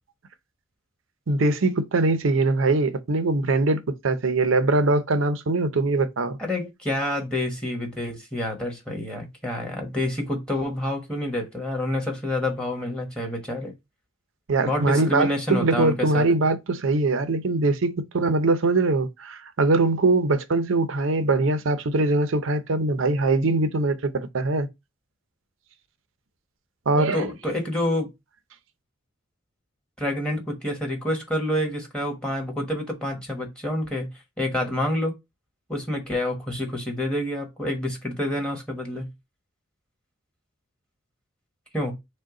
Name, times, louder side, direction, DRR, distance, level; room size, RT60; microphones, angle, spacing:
voice 1, 1.3-6.4 14.5-24.7 26.9-27.3, right 2 dB, 75° right, 0.6 m, -22 dB
voice 2, 6.4-13.7 14.6-16.3 27.0-28.1 30.0-34.1 34.4-35.2 35.7-39.1 41.7-42.0, left 1 dB, 5° left, 1.2 m, -28 dB
6.2 x 2.2 x 3.8 m
head